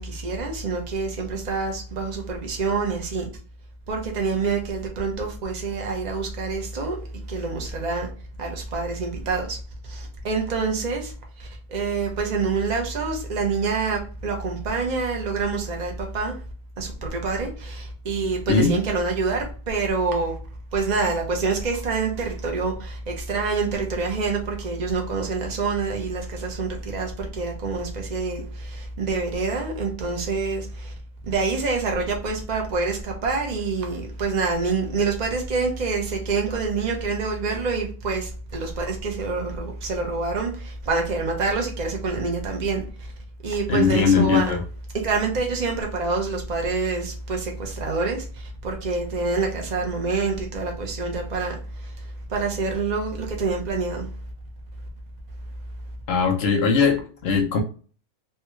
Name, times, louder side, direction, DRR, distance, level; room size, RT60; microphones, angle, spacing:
voice 1, 0.0-3.3 3.9-7.0 7.3-8.1 8.4-16.4 16.8-20.4 20.7-30.9 31.2-43.1 43.4-44.5 45.0-54.1, right 4 dB, 35° right, 0.7 m, -26 dB
voice 2, 43.7-44.6 56.1-57.6, left 5 dB, 60° left, 0.7 m, -20 dB
3.4 x 2.4 x 3.0 m
omnidirectional pair, 1.7 m